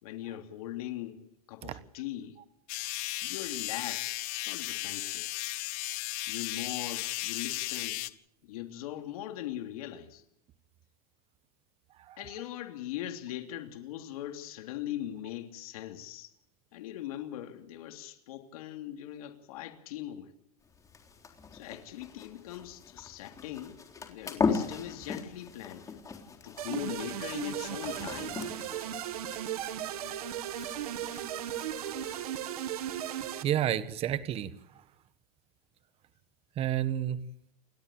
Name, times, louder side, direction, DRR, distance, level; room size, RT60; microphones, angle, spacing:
voice 1, 0.0-1.2 1.5-2.4 3.2-5.2 6.3-8.0 8.4-10.2 12.2-16.3 16.7-20.3 21.5-26.0 26.4-28.4, left 12 dB, 70° left, 3.1 m, -40 dB
sound 1, 2.7-8.1, left 21 dB, 50° left, 1.3 m, -35 dB
sound 2, 20.6-32.2, left 5 dB, 15° left, 3.8 m, -38 dB
sound 3, 26.6-33.4, right 10 dB, 80° right, 2.2 m, -36 dB
voice 2, 33.4-34.5 36.6-37.2, right 11 dB, 30° right, 1.4 m, -30 dB
29.5 x 13.0 x 8.8 m
supercardioid pair, 135°, 19 cm